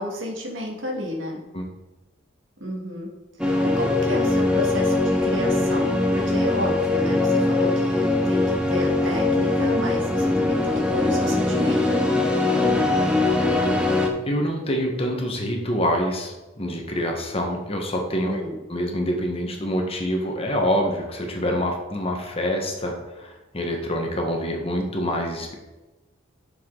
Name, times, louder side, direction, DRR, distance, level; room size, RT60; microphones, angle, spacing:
voice 1, 0.0-1.4 2.6-3.1 3.4-12.2 18.3-18.6, left 1 dB, 85° right, 0 dB, 2.1 m, -31 dB
sound 1, 3.4-14.1, left 2 dB, 5° right, 1.1 m, -21 dB
voice 2, 14.3-18.4 18.7-25.5, equal, 30° left, 2 dB, 1.5 m, -26 dB
9.5 x 6.9 x 4.0 m, 1.1 s
head